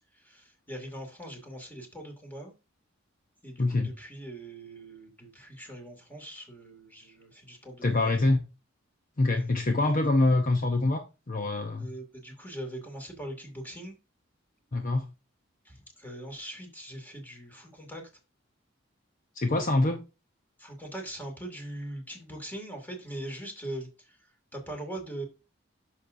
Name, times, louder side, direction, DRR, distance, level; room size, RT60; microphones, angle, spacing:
voice 1, 0.1-2.5 3.4-8.1 11.8-14.0 14.8-14.9 15.6-18.1 20.6-24.2 24.5-25.2, right 1 dB, 10° left, 2.4 m, -41 dB
voice 2, 3.6-3.9 7.8-8.4 9.2-11.9 14.7-15.1 19.3-20.0, left 2 dB, 40° left, 0.8 m, -25 dB
10.0 x 6.6 x 2.7 m
head